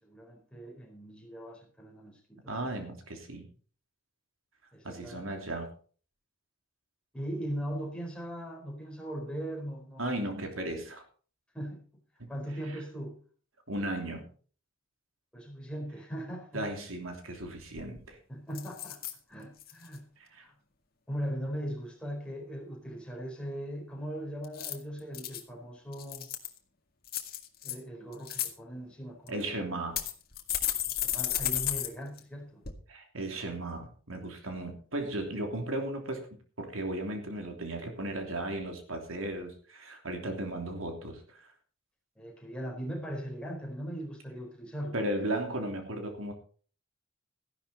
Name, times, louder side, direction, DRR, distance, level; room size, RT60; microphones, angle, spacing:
voice 1, 0.0-2.7 4.7-5.3 7.1-10.1 11.5-11.8 12.3-13.2 15.3-16.7 18.3-19.0 19.3-20.5 21.1-26.3 27.6-29.7 31.0-32.6 42.2-45.0, equal, 5° left, -2 dB, 4.6 m, -39 dB
voice 2, 2.5-3.5 4.8-5.7 10.0-11.0 12.7-12.8 13.7-14.2 16.5-18.2 20.2-20.5 29.3-30.0 32.9-36.3 36.6-41.5 44.9-46.3, right 1 dB, 80° right, 4 dB, 3.1 m, -36 dB
sound 1, 17.4-17.5 17.8-18.1 18.5-19.1 19.6-20.0 24.4-25.4 25.9-26.6 27.1-27.7 28.1-28.5 29.3-29.4 30.0-31.9 32.2-32.3 32.6-32.7, left 12 dB, 45° left, 2.0 m, -33 dB
14.5 x 11.5 x 4.3 m, 0.42 s
head